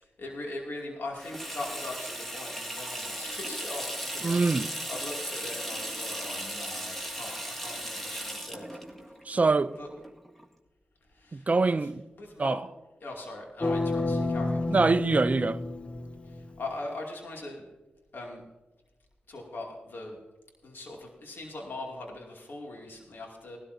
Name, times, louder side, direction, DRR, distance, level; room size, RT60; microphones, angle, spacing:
voice 1, 0.0-4.4 4.9-8.8 9.8-9.9 11.1-11.9 12.2-12.6 13.0-14.7 16.2-17.6 18.1-18.4 19.3-20.2 20.6-23.6, left 2 dB, 75° left, 2.6 m, -40 dB
Water tap faucet / Sink (filling or washing), 1.1-10.5, equal, 5° left, 1.8 m, -37 dB
voice 2, 4.2-4.7 9.3-9.7 11.3-12.0 12.4-12.6 14.7-15.6, right 3 dB, 45° right, 0.5 m, -24 dB
sound 1, 13.6-16.7, left 2 dB, 30° left, 0.6 m, -30 dB
18.5 x 12.5 x 2.7 m
cardioid pair, 50°, 4 cm